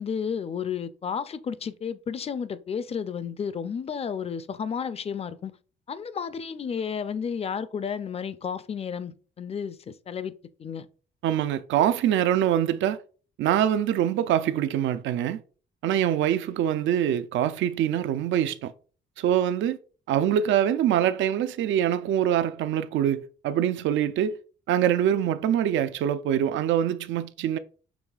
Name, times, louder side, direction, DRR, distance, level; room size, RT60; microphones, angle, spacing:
voice 1, 0.0-5.6 5.9-10.3 10.6-10.9, left 7 dB, 30° left, 0.4 m, -32 dB
voice 2, 11.2-13.0 13.4-15.4 15.8-18.7 19.2-19.8 20.1-24.4 24.7-27.6, right 10 dB, 75° right, 0.4 m, -24 dB
6.1 x 3.2 x 2.3 m
cardioid pair, 90°, 20 cm